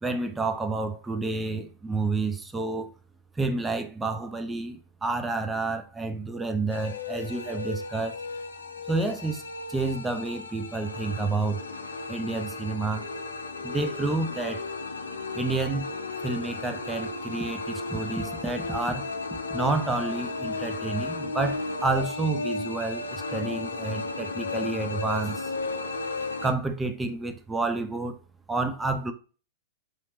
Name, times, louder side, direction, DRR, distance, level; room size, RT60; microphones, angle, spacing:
voice 1, 0.0-2.9 3.4-8.2 8.9-9.4 9.7-11.6 12.1-13.1 13.6-14.7 15.3-15.9 16.2-19.1 19.5-25.5 26.4-28.2 28.5-29.1, right 3 dB, 10° right, 0.5 m, -29 dB
sound 1, 6.7-26.5, left 3 dB, 75° left, 0.5 m, -34 dB
4.2 x 3.1 x 2.9 m
figure-of-eight pair, 100°, 0 cm